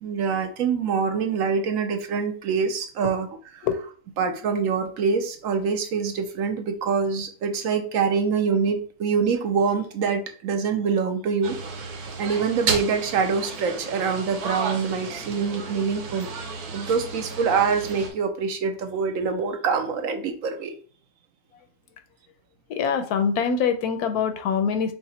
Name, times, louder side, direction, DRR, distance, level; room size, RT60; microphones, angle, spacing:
voice 1, 0.0-3.3 3.5-3.7 4.2-11.6 11.9-16.3 16.7-20.7, right 5 dB, 70° right, 6 dB, 1.0 m, -25 dB
sound 1, 11.4-18.1, right 4 dB, 85° right, 1.4 m, -33 dB
voice 2, 22.7-24.9, left 6 dB, 85° left, 8 dB, 1.2 m, -24 dB
5.6 x 2.1 x 4.1 m, 0.42 s
omnidirectional pair, 1.6 m